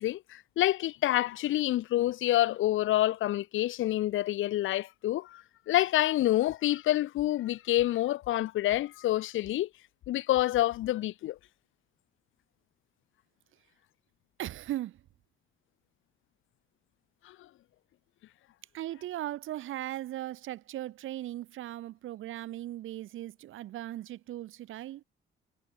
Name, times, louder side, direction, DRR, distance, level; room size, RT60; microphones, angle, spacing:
voice 1, 0.0-9.7 10.1-11.4 17.2-17.3, left 14 dB, 80° left, 1.5 m, -27 dB
voice 2, 14.4-15.0 18.7-25.0, right 14 dB, 85° right, 6.0 m, -38 dB
cardioid pair, 90°, 20 cm